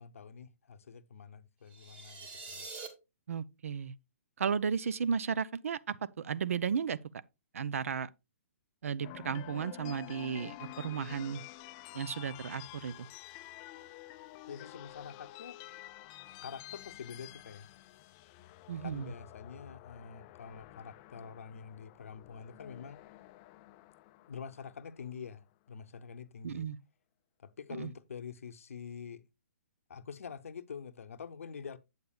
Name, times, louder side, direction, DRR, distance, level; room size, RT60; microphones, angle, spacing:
voice 1, 0.0-2.7 14.5-15.6 16.4-17.7 18.8-23.0 24.3-26.7 27.4-29.3 29.9-31.8, left 6 dB, 75° left, 0.7 m, -46 dB
sound 1, 1.7-2.9, right 4 dB, 15° right, 1.4 m, -45 dB
voice 2, 3.3-3.9 4.4-7.0 7.5-8.1 8.8-11.4 11.9-13.1 18.7-19.1 26.4-26.8 27.8-27.9, right 7 dB, 75° right, 0.5 m, -34 dB
sound 2, 9.0-25.2, left 17 dB, 30° left, 0.3 m, -50 dB
8.5 x 8.1 x 2.3 m
hypercardioid pair, 145°, 8 cm